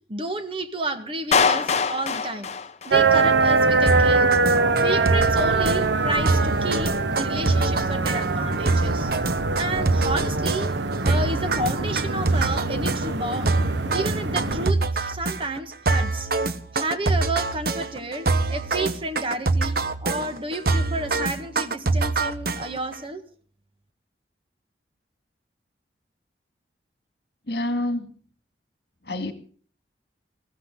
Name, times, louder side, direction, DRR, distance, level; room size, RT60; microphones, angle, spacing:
voice 1, 0.1-2.5 2.8-4.3 4.8-9.1 9.5-10.7 11.0-13.6 13.9-16.3 16.7-23.2, right 2 dB, 30° right, 8 dB, 1.6 m, -31 dB
Clapping, 1.3-3.3, left 5 dB, 40° left, 0.7 m, -23 dB
sound 1, 2.9-14.7, right 3 dB, 80° right, 1.1 m, -23 dB
sound 2, 3.9-23.0, right 3 dB, 55° right, 1.0 m, -25 dB
voice 2, 27.5-28.1 29.0-29.3, left 1 dB, 60° left, 9 dB, 2.2 m, -27 dB
20.0 x 16.0 x 3.8 m, 0.43 s
head